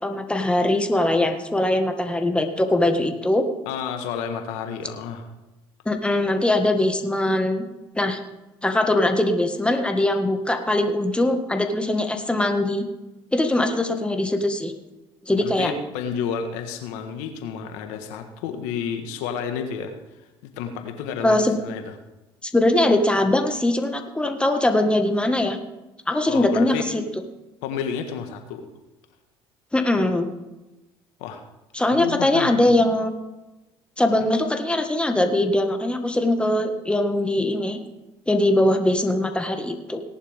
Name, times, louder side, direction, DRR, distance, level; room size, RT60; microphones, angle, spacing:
voice 1, 0.0-3.5 5.8-7.6 8.0-8.2 8.6-12.8 13.3-14.7 15.3-15.7 21.2-21.6 22.4-25.6 26.1-27.0 29.7-30.3 31.7-33.1 34.0-37.8 38.3-40.0, left 1 dB, 10° left, 6 dB, 1.7 m, -21 dB
voice 2, 3.6-5.2 15.3-19.9 20.6-21.9 26.2-26.9 27.6-28.7 31.2-31.4 31.9-32.5, left 7 dB, 75° left, 6 dB, 1.6 m, -31 dB
18.0 x 11.0 x 3.6 m, 1.0 s
hypercardioid pair, 70°, 12 cm